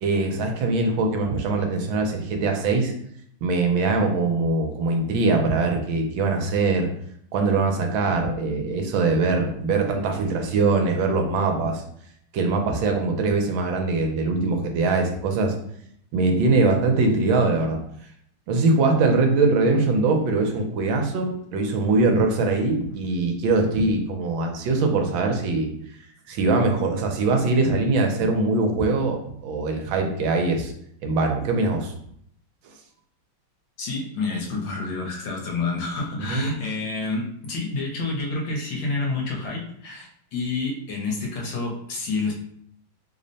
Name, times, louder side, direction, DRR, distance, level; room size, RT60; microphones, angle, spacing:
voice 1, 0.0-2.9 3.4-6.9 7.3-11.8 12.3-15.5 16.1-17.8 18.5-25.7 26.3-30.7 31.0-31.9 36.3-36.5, right 3 dB, 75° right, 3 dB, 1.3 m, -22 dB
voice 2, 33.8-42.3, left 3 dB, 70° left, -1 dB, 1.4 m, -29 dB
3.4 x 2.1 x 3.9 m, 0.69 s
omnidirectional pair, 2.2 m